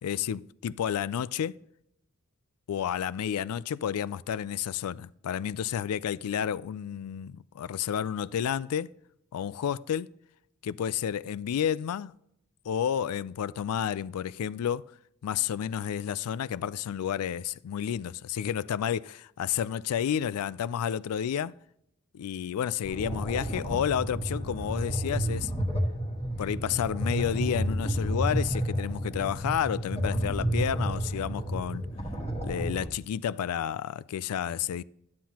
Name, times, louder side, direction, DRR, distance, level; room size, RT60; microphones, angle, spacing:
voice 1, 0.0-1.5 2.7-8.9 9.3-10.1 10.6-12.1 12.7-14.8 15.2-21.5 22.1-25.5 26.4-31.9 32.4-34.8, left 9 dB, 90° left, 0.3 m, -31 dB
sound 1, 22.8-32.9, equal, 25° left, 1.4 m, -31 dB
12.0 x 7.5 x 2.8 m
head